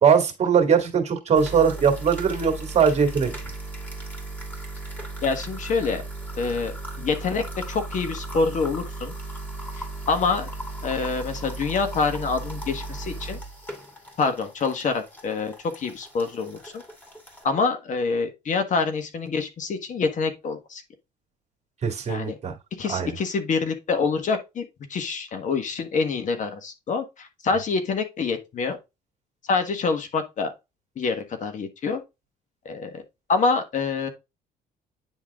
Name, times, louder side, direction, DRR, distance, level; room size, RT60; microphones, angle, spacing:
voice 1, 0.0-3.3 21.8-22.5 22.9-23.1, right 7 dB, 40° right, 2.3 m, -20 dB
sound 1, 1.3-17.4, right 2 dB, 10° left, 2.7 m, -36 dB
voice 2, 5.2-6.0 6.4-9.1 9.8-10.5 10.8-13.4 14.2-16.8 17.4-20.8 22.1-22.3 22.8-28.8 29.4-30.5 31.0-32.0 32.6-33.0 33.3-34.1, left 4 dB, 50° left, 1.5 m, -26 dB
9.7 x 3.8 x 3.6 m
cardioid pair, 110°, 17 cm